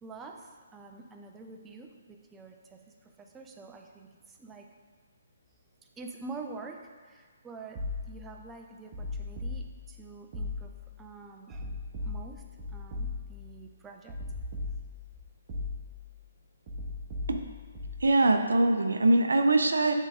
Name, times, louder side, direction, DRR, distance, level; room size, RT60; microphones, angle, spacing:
voice 1, 0.0-2.8 3.2-4.7 6.0-7.8 8.1-12.4 12.7-14.5, right 3 dB, 10° right, 2 dB, 0.5 m, -46 dB
sound 1, 7.7-8.4 8.9-10.0 10.3-11.0 11.5-13.5 14.1-15.1 15.5-16.1 16.7-18.1, left 3 dB, 35° right, 1.6 m, -38 dB
voice 2, 18.0-19.9, right 2 dB, 80° right, 6 dB, 0.5 m, -23 dB
8.0 x 3.7 x 3.6 m, 1.5 s
figure-of-eight pair, 140°, 0 cm